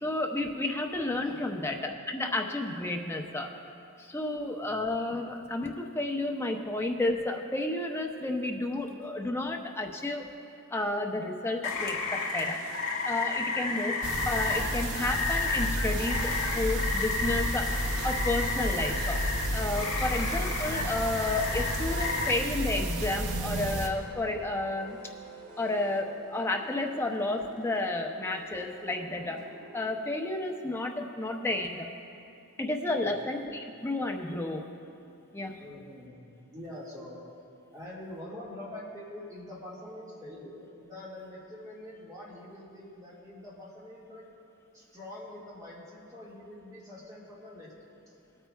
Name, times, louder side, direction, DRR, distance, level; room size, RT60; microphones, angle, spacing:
voice 1, 0.0-3.5 4.0-10.3 10.7-12.6 13.0-17.7 18.0-19.2 19.5-25.0 25.6-29.4 29.7-31.9 32.6-34.7 35.3-35.5, left 2 dB, 10° left, 1 dB, 0.6 m, -31 dB
voice 2, 1.1-1.5 4.6-4.8 9.3-9.4 33.0-33.1 35.1-35.2 35.6-37.2 37.7-44.2 44.7-47.7, left 1 dB, 15° right, -6 dB, 1.8 m, -45 dB
Rain, 11.6-22.3, left 4 dB, 60° left, 1.0 m, -32 dB
sound 1, 14.0-23.9, right 1 dB, 85° right, 0.9 m, -32 dB
sound 2, 17.8-29.9, right 3 dB, 55° right, 2.0 m, -49 dB
19.0 x 8.8 x 2.3 m, 2.7 s
head